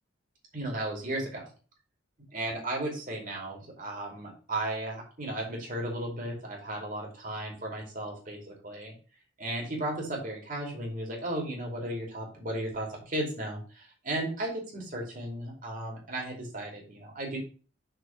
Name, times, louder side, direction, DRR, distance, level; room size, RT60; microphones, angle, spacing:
voice 1, 0.5-1.5 2.3-8.9 9.4-17.4, right 1 dB, 45° right, 0 dB, 2.7 m, -35 dB
6.4 x 4.4 x 5.9 m, 0.38 s
head